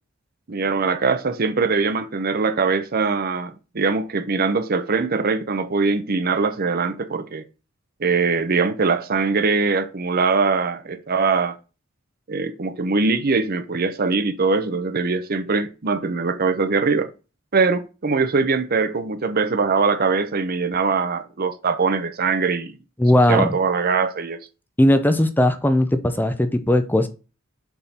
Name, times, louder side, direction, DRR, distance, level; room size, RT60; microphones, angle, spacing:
voice 1, 0.5-7.4 8.0-11.6 12.3-17.1 17.5-22.8 23.3-24.4, right 4 dB, 45° right, 0.7 m, -22 dB
voice 2, 23.0-23.6 24.8-27.1, left 1 dB, 10° left, 0.5 m, -18 dB
6.9 x 3.7 x 4.3 m
head